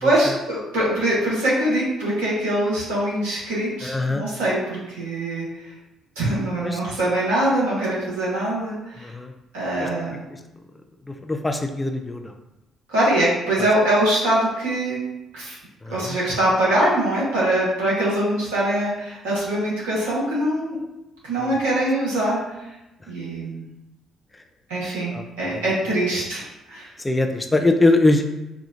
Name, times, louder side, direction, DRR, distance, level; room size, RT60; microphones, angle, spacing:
voice 1, 0.0-5.7 6.2-9.1 9.5-10.2 12.9-15.0 15.3-15.6 15.9-20.8 21.2-22.4 23.1-23.6 24.7-26.9, right 1 dB, 70° right, -7 dB, 1.2 m, -23 dB
voice 2, 3.8-4.2 6.6-6.8 9.0-9.3 9.8-9.9 11.2-12.3 15.8-16.2 21.4-21.5 25.1-25.6 27.0-28.2, left 2 dB, 15° left, 5 dB, 0.4 m, -22 dB
4.3 x 2.3 x 2.5 m, 0.96 s
figure-of-eight pair, 45°, 0 cm